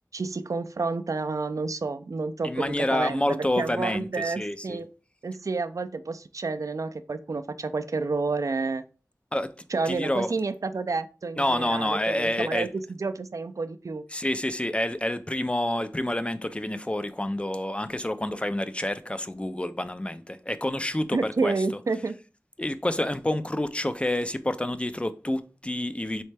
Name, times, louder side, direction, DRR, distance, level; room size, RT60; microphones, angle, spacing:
voice 1, 0.1-4.9 5.2-8.8 9.7-14.0 21.1-22.2, right 3 dB, 60° right, 0.3 m, -30 dB
voice 2, 2.4-4.8 9.3-9.5 9.9-10.3 11.4-12.7 14.1-21.5 22.6-26.2, left 1 dB, 20° left, 0.4 m, -28 dB
4.2 x 3.2 x 3.3 m
wide cardioid pair, 50°, 6 cm